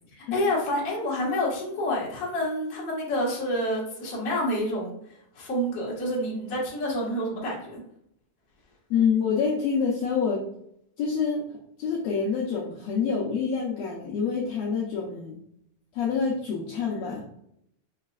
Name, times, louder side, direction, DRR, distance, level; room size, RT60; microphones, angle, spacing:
voice 1, 0.1-7.8, left 1 dB, 40° left, -5 dB, 1.2 m, -28 dB
voice 2, 8.9-10.4 11.0-11.5 11.8-15.4 15.9-17.2, left 6 dB, 75° left, -3 dB, 1.6 m, -26 dB
5.7 x 3.2 x 2.3 m, 0.74 s
omnidirectional pair, 3.7 m